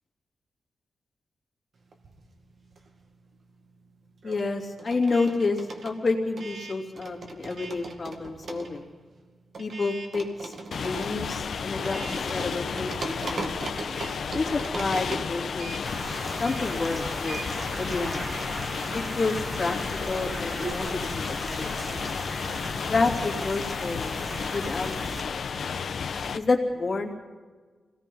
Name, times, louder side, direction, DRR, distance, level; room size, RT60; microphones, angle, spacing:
sound 1, 1.9-3.2 3.4-20.7, right 3 dB, 55° right, 2.1 m, -40 dB
voice 1, 4.2-8.9 9.6-10.5 10.8-13.6 14.3-15.9 16.4-17.4 17.8-18.2 18.9-19.8 20.1-22.1 22.9-25.3 26.3-27.1, left 3 dB, 35° left, 0 dB, 2.9 m, -29 dB
sound 2, 10.7-26.4, left 6 dB, 65° left, 1.0 m, -32 dB
sound 3, 15.8-25.2, right 1 dB, 20° right, 1.4 m, -38 dB
26.5 x 18.0 x 5.5 m, 1.5 s
wide cardioid pair, 140°, 0 cm